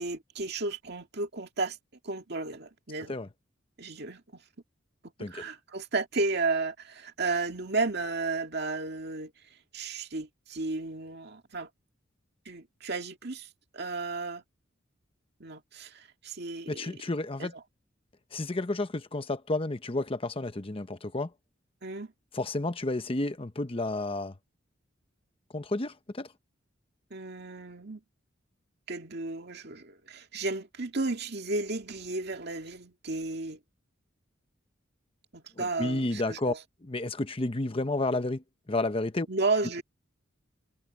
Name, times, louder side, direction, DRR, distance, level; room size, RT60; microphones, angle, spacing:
voice 1, 0.0-1.8 2.0-3.1 3.8-4.2 5.2-9.3 9.7-11.7 12.5-13.5 13.7-14.4 15.4-17.0 17.4-17.5 21.8-22.1 27.1-28.0 28.9-33.6 35.3-36.6 39.3-39.8, right 3 dB, 55° right, 2.2 m, -33 dB
voice 2, 16.7-17.5 18.3-21.3 22.3-24.3 25.5-26.3 35.6-36.5 36.8-39.3, left 2 dB, 30° left, 0.9 m, -31 dB
head